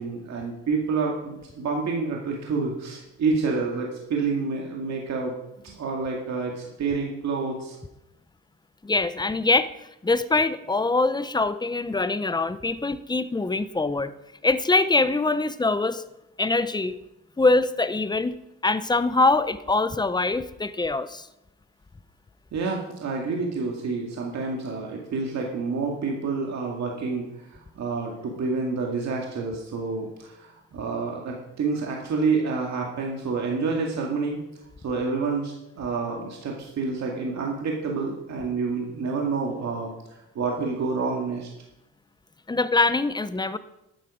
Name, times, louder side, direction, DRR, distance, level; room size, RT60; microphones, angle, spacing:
voice 1, 0.0-7.8 22.5-34.4 34.8-39.9 40.3-41.5, right 4 dB, 65° right, 0 dB, 2.2 m, -28 dB
voice 2, 8.8-9.7 10.0-14.1 14.4-16.0 16.4-17.0 17.4-18.3 18.6-21.3 42.5-43.6, left 3 dB, 15° left, 13 dB, 0.7 m, -23 dB
12.5 x 9.5 x 5.0 m, 0.89 s
cardioid pair, 90°, 30 cm